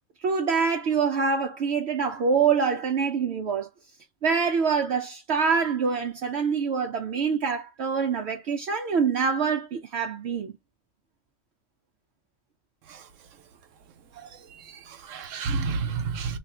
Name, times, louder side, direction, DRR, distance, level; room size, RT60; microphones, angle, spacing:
voice 1, 0.2-3.7 4.2-10.5, right 5 dB, 65° right, 0.9 m, -25 dB
voice 2, 14.2-16.4, right 4 dB, 90° right, 1.1 m, -31 dB
3.0 x 2.4 x 4.3 m
omnidirectional pair, 1.3 m